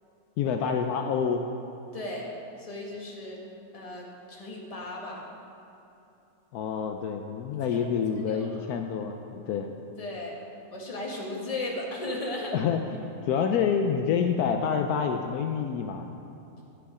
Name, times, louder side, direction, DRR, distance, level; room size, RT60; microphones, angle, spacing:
voice 1, 0.4-1.4 6.5-9.7 12.5-16.1, left 6 dB, 75° left, 5 dB, 1.1 m, -27 dB
voice 2, 1.9-2.3 2.6-3.4 3.7-5.2 7.7-7.8 8.3-8.6 10.0-10.4 10.7-12.5, left 2 dB, 25° left, -2 dB, 1.4 m, -36 dB
10.5 x 8.3 x 4.9 m, 2.9 s
omnidirectional pair, 1.7 m